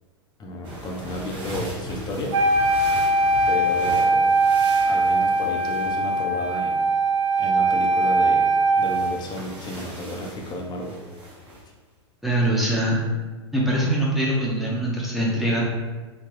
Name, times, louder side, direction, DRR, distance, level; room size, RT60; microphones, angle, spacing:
voice 1, 0.4-2.6 3.4-4.3 4.9-6.8 7.4-8.5 8.7-10.9, equal, 30° left, 0 dB, 0.7 m, -32 dB
sound 1, 0.6-6.6 8.7-11.7, equal, 35° right, 1.5 m, -39 dB
Wind instrument woodwind instrument, 2.3-9.3, right 2 dB, 85° right, 0.4 m, -21 dB
voice 2, 12.2-13.0 13.5-15.6, right 1 dB, ahead, -5 dB, 0.8 m, -23 dB
3.9 x 2.2 x 3.1 m, 1.3 s
hypercardioid pair, 100°, 15 cm